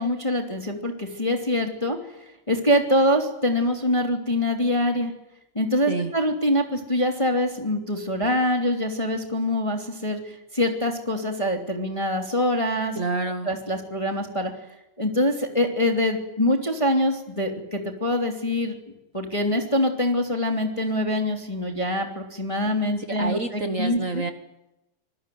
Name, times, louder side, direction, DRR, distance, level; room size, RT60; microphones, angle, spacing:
voice 1, 0.0-2.0 2.5-5.1 5.5-13.0 13.4-14.5 15.0-18.8 19.1-24.2, left 1 dB, 10° left, 3 dB, 2.5 m, -24 dB
voice 2, 12.9-13.5 23.2-24.3, right 3 dB, 65° right, 7 dB, 0.7 m, -27 dB
26.5 x 20.5 x 9.4 m, 0.92 s
omnidirectional pair, 3.7 m